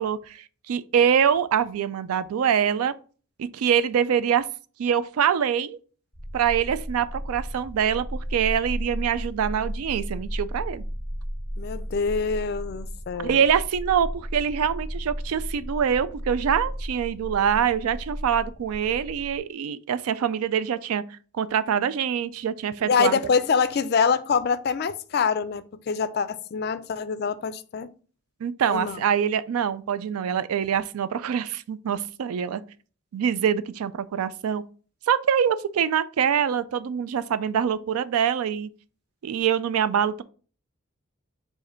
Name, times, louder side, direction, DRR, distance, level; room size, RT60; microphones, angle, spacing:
voice 1, 0.0-2.9 3.4-4.5 4.8-5.8 6.3-10.8 13.2-23.2 28.4-32.6 33.1-34.6 35.1-38.7 39.2-40.2, right 8 dB, 90° right, 0.4 m, -24 dB
sound 1, 6.1-19.4, equal, 25° right, 2.3 m, -34 dB
voice 2, 11.6-13.4 22.8-27.9 28.7-29.0, left 5 dB, 50° left, 0.3 m, -25 dB
4.8 x 2.6 x 4.3 m
head